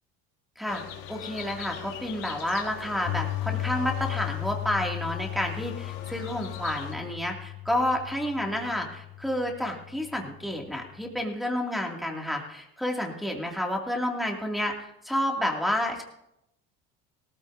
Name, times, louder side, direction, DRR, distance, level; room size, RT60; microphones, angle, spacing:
sound 1, 0.7-6.9, left 9 dB, 80° left, 1.7 m, -42 dB
voice 1, 1.1-16.0, left 1 dB, ahead, 0 dB, 2.3 m, -30 dB
Piano, 3.1-11.2, left 17 dB, 45° left, 0.6 m, -36 dB
18.5 x 14.0 x 2.7 m, 0.83 s
supercardioid pair, 90°, 30 cm